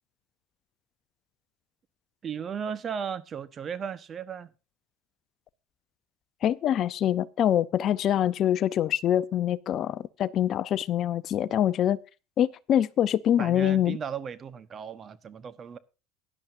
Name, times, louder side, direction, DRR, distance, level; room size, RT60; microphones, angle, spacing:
voice 1, 2.2-4.5 13.4-15.8, right 7 dB, 35° right, 1.1 m, -35 dB
voice 2, 6.4-12.0 12.4-14.0, left 10 dB, 50° left, 0.6 m, -25 dB
16.5 x 11.0 x 2.6 m
hypercardioid pair, 80°, 0 cm